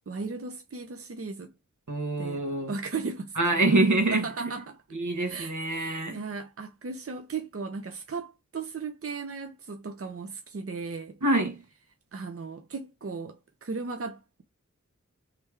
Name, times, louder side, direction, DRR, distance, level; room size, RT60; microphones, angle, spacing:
voice 1, 0.1-1.5 2.2-3.6 4.1-4.8 5.3-11.2 12.1-14.4, right 4 dB, 50° right, 0.7 m, -36 dB
voice 2, 1.9-2.7 3.4-4.5 4.9-6.2 11.2-11.6, right 2 dB, 85° right, 1.6 m, -25 dB
3.4 x 3.3 x 4.6 m
wide cardioid pair, 50°, 29 cm